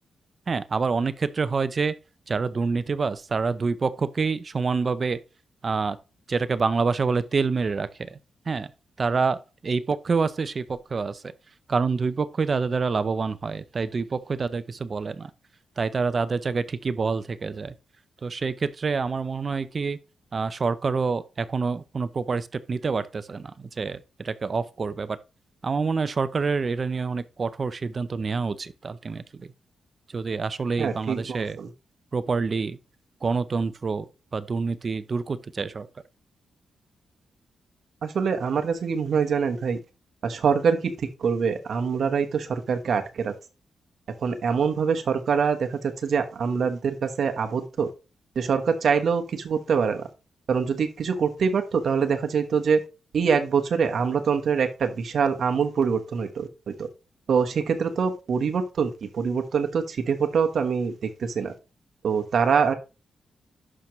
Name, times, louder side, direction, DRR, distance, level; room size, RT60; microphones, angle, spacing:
voice 1, 0.5-1.9 2.3-5.2 5.6-6.0 6.3-8.2 8.5-8.7 9.0-11.3 11.7-15.3 15.8-17.7 18.2-20.0 20.3-25.2 25.6-29.5 30.1-31.6 32.1-32.8 33.2-35.9, right 4 dB, 30° right, 0.5 m, -27 dB
voice 2, 30.8-31.7 38.0-39.8 40.2-43.3 44.2-47.9 48.3-50.1 50.5-52.8 53.1-56.9 57.3-61.5 62.0-62.7, right 6 dB, 55° right, 1.2 m, -24 dB
11.0 x 5.9 x 3.1 m
wide cardioid pair, 160°, 0 cm